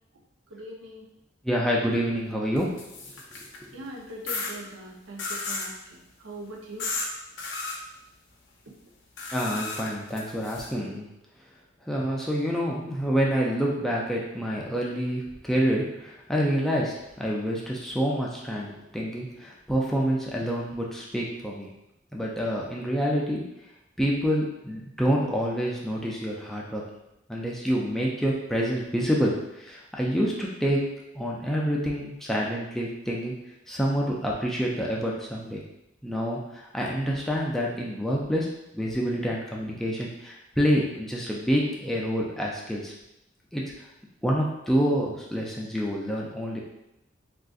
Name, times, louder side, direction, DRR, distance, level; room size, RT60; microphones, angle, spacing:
voice 1, 0.5-1.0 3.7-6.9, right 1 dB, 90° right, -1 dB, 0.6 m, -41 dB
voice 2, 1.4-2.8 3.6-3.8 9.3-11.1 11.9-21.7 22.1-23.4 24.0-26.8 27.3-30.8 31.1-33.3 33.7-35.6 36.0-38.5 38.7-42.9 43.5-43.6 44.2-46.6, equal, ahead, -4 dB, 0.4 m, -27 dB
sound 1, 2.6-3.6 4.3-4.5 5.2-5.7 6.8-7.1 7.4-7.8 9.2-10.7, left 3 dB, 65° left, 0.6 m, -33 dB
3.7 x 2.4 x 2.3 m, 0.86 s
head